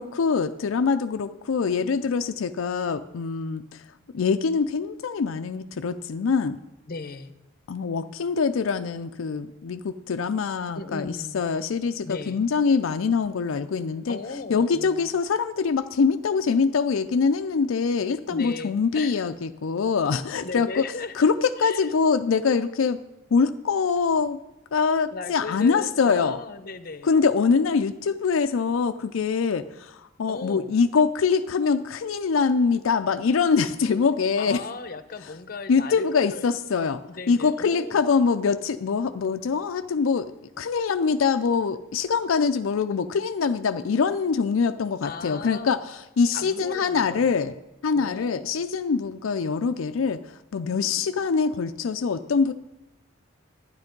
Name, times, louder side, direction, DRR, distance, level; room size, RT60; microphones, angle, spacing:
voice 1, 0.0-3.8 4.1-6.6 7.7-14.2 14.5-20.8 21.2-23.0 23.3-24.4 24.7-26.4 27.0-34.6 35.7-40.3 40.6-47.6 47.8-52.5, left 5 dB, 85° left, 8 dB, 0.4 m, -24 dB
voice 2, 6.9-7.3 10.7-11.4 12.0-12.4 14.1-15.1 18.3-19.2 20.4-21.3 21.6-21.9 25.1-27.1 30.3-30.7 34.4-36.4 37.1-38.0 45.0-45.7 46.3-47.4 47.9-48.5 50.7-51.0, left 3 dB, 50° left, 12 dB, 0.8 m, -37 dB
12.0 x 9.8 x 5.2 m, 0.99 s
head